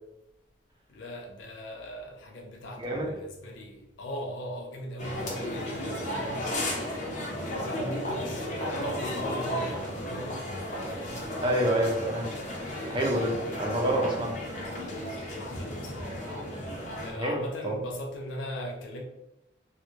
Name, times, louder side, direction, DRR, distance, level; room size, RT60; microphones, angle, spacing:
voice 1, 0.9-6.9 7.4-10.5 11.0-11.4 15.3-16.2 17.0-19.0, equal, 75° left, 0.5 m, -39 dB
voice 2, 2.8-3.1 11.4-12.3 12.9-14.4 17.1-17.8, right 1 dB, 25° right, 0.6 m, -28 dB
sound 1, 5.0-17.1, left 1 dB, 40° left, 0.7 m, -34 dB
3.1 x 2.4 x 3.1 m
head